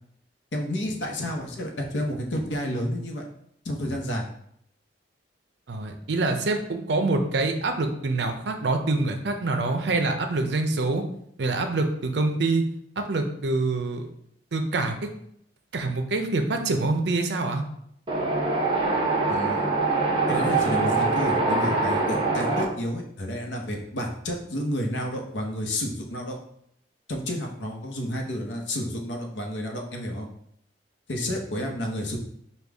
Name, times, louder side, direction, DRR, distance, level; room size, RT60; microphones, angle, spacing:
voice 1, 0.5-3.2 3.6-4.2 19.3-19.7 20.3-26.4 27.1-30.3 31.1-32.2, equal, 80° left, 2 dB, 0.8 m, -30 dB
voice 2, 5.7-11.0 11.4-12.6 13.0-14.1 14.5-15.1 15.7-17.6, right 3 dB, 65° right, 5 dB, 0.5 m, -25 dB
Wind, 18.1-22.6, right 3 dB, 30° right, 0.8 m, -24 dB
5.2 x 2.3 x 3.4 m, 0.72 s
head